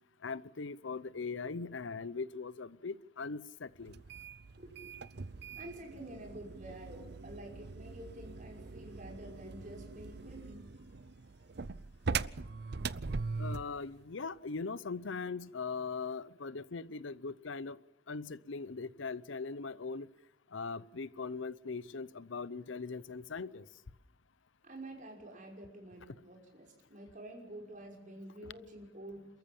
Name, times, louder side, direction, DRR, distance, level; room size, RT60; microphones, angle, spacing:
voice 1, 0.2-3.9 13.4-17.8 18.1-20.1 20.5-23.7 26.1-26.2 28.4-28.5, left 4 dB, 75° left, 0.7 m, -40 dB
sound 1, 3.9-13.8, right 4 dB, 55° right, 0.6 m, -41 dB
voice 2, 4.6-5.0 5.6-10.7 24.6-29.3, right 1 dB, 40° right, 5.8 m, -49 dB
28.5 x 14.0 x 7.2 m
head